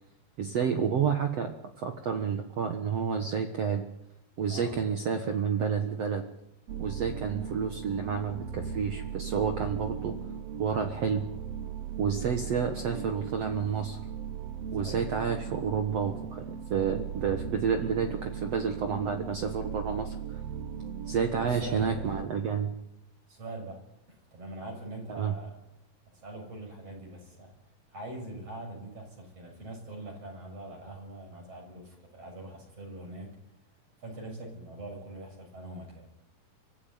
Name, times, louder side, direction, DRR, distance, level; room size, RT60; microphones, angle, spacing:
voice 1, 0.4-3.8 4.4-6.3 6.8-10.2 10.6-11.3 12.0-14.0 14.7-20.4 21.1-22.7 25.1-25.3, right 6 dB, 55° right, 5 dB, 2.0 m, -30 dB
sound 1, 6.7-22.3, right 8 dB, 85° right, 1.4 m, -38 dB
voice 2, 14.7-15.1 21.4-22.0 23.3-25.6 26.1-27.5 27.9-33.4 34.0-36.1, right 1 dB, 40° right, 2 dB, 7.9 m, -43 dB
24.5 x 15.5 x 9.4 m, 0.85 s
omnidirectional pair, 4.4 m